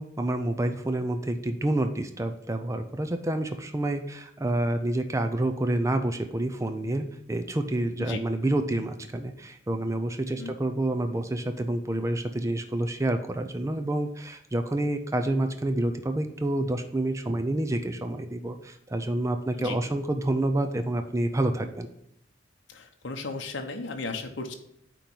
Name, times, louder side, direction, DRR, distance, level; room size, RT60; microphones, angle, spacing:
voice 1, 0.0-21.9, right 1 dB, 15° right, 6 dB, 0.5 m, -28 dB
voice 2, 22.7-24.5, left 3 dB, 75° left, 4 dB, 0.8 m, -35 dB
8.8 x 3.0 x 5.3 m, 0.76 s
head